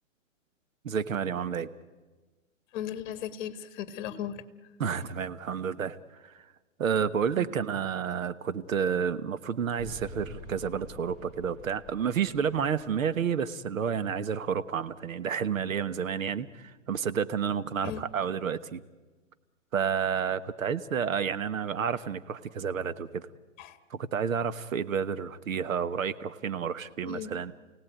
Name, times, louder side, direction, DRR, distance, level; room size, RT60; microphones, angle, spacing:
voice 1, 0.8-1.7 4.8-6.0 6.2-6.3 6.8-18.8 19.7-23.2 23.9-27.5, right 7 dB, 85° right, 13 dB, 1.3 m, -30 dB
voice 2, 2.7-4.4 7.4-7.5 17.8-18.0 23.6-23.8 27.1-27.3, left 10 dB, 35° left, 11 dB, 1.8 m, -36 dB
sound 1, 9.8-15.0, left 1 dB, 20° right, 7.4 m, -49 dB
29.0 x 17.5 x 9.3 m, 1.3 s
hypercardioid pair, 150°, 39 cm